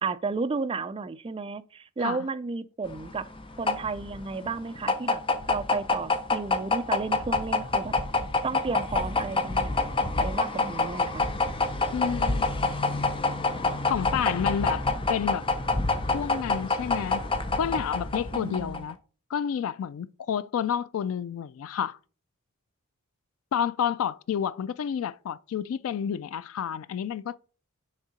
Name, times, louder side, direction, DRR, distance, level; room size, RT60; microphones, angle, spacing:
voice 1, 0.0-3.3 3.6-5.2 5.5-7.9 8.4-9.8 10.2-11.3 18.3-18.9, right 4 dB, 25° right, 0.3 m, -33 dB
sound 1, 2.9-18.9, left 3 dB, 25° left, 0.6 m, -27 dB
voice 2, 11.9-12.5 13.9-15.5 16.1-17.2 17.6-19.0 19.3-22.0 23.5-27.4, left 8 dB, 70° left, 0.3 m, -30 dB
6.5 x 3.7 x 4.9 m
head